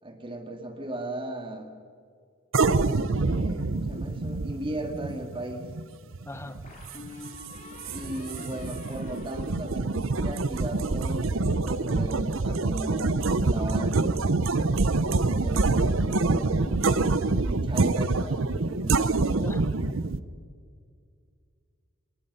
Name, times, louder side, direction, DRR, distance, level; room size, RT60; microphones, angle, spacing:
voice 1, 0.0-1.7 3.2-5.7 7.9-14.2 15.4-19.1, right 1 dB, 25° right, 5 dB, 2.3 m, -37 dB
sound 1, 2.5-20.2, right 3 dB, 60° right, 0.8 m, -26 dB
sound 2, 3.9-4.8 6.6-10.3, left 2 dB, 35° left, 3.7 m, -47 dB
voice 2, 6.3-6.6 19.4-20.0, left 1 dB, 10° left, 12 dB, 0.7 m, -40 dB
27.5 x 20.0 x 5.6 m, 2.2 s
head